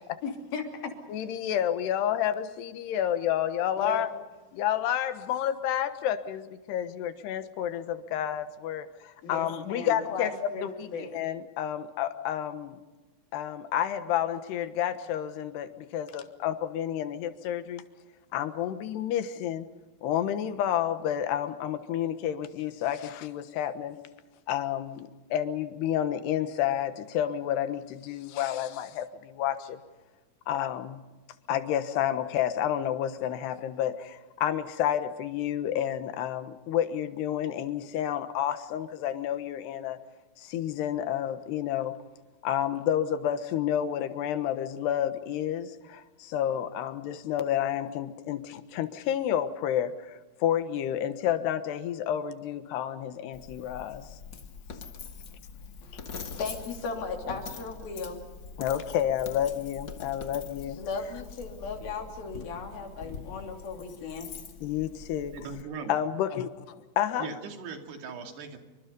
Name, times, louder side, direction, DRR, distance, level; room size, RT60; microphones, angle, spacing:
voice 1, 0.2-0.9 3.8-4.0 9.2-11.1 55.8-58.2 60.8-64.3, left 4 dB, 65° left, 3 dB, 4.8 m, -36 dB
voice 2, 1.1-4.1 4.5-10.3 10.6-12.8 13.3-17.8 18.3-19.7 20.0-24.0 24.5-29.8 30.5-31.0 31.5-40.0 40.4-41.9 42.4-54.1 58.6-60.8 64.6-65.4 65.9-67.3, left 10 dB, 90° left, 10 dB, 3.4 m, -30 dB
Coin (dropping), 53.3-65.6, left 5 dB, 50° left, 1.4 m, -44 dB
voice 3, 65.3-65.9 67.2-68.6, right 5 dB, 85° right, 5 dB, 4.6 m, -39 dB
27.5 x 25.0 x 5.4 m, 1.2 s
omnidirectional pair, 4.6 m